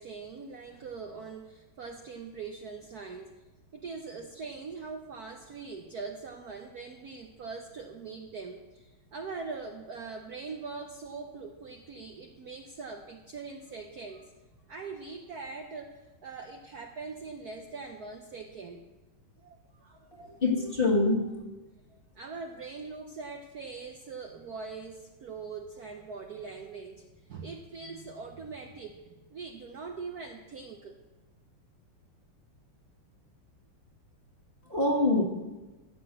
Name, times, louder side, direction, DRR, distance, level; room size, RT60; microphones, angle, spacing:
voice 1, 0.0-3.3 3.7-14.3 14.7-18.9 19.4-20.1 21.9-29.0 29.3-30.9, right 4 dB, 60° right, 3 dB, 1.0 m, -42 dB
voice 2, 20.1-21.4 34.7-35.2, left 2 dB, 25° left, 0 dB, 1.5 m, -25 dB
15.0 x 6.0 x 7.6 m, 1.2 s
omnidirectional pair, 2.4 m